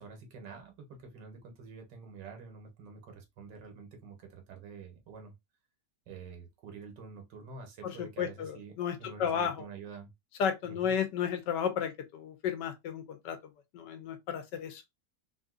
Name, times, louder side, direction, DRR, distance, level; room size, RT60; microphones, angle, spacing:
voice 1, 0.0-5.3 6.1-10.1 10.6-10.9, right 5 dB, 80° right, 1.6 m, -48 dB
voice 2, 7.8-9.7 10.4-13.4 13.7-14.8, left 7 dB, 80° left, 1.3 m, -33 dB
3.5 x 2.6 x 2.4 m
omnidirectional pair, 1.9 m